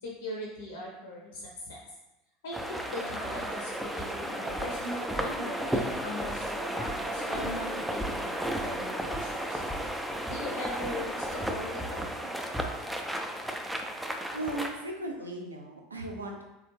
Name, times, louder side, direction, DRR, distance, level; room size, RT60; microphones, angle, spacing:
voice 1, 0.0-1.9 2.4-9.6 10.3-12.1, left 1 dB, 75° left, -2 dB, 0.6 m, -40 dB
sound 1, 2.5-14.7, right 1 dB, 5° right, 0.3 m, -33 dB
voice 2, 14.3-16.4, right 1 dB, 85° right, 2 dB, 0.4 m, -36 dB
3.4 x 2.3 x 3.1 m, 0.97 s
figure-of-eight pair, 75°, 0 cm